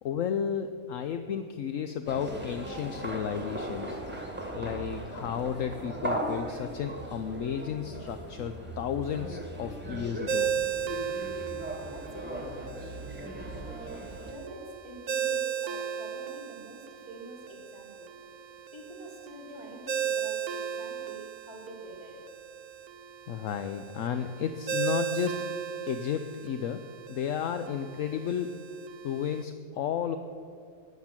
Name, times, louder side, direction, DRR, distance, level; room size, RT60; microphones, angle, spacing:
voice 1, 0.0-4.0 4.5-10.5 23.3-25.3 25.8-26.8 27.1-28.5 29.0-30.2, left 8 dB, 70° left, 9 dB, 1.0 m, -33 dB
sound 1, 2.1-14.3, right 1 dB, 5° right, 1.9 m, -38 dB
Ringtone, 10.3-29.4, right 8 dB, 65° right, 1.0 m, -36 dB
voice 2, 11.9-13.1 13.7-18.1 18.7-22.1, right 1 dB, 15° left, -2 dB, 3.5 m, -46 dB
15.0 x 9.7 x 7.4 m, 2.4 s
omnidirectional pair, 1.5 m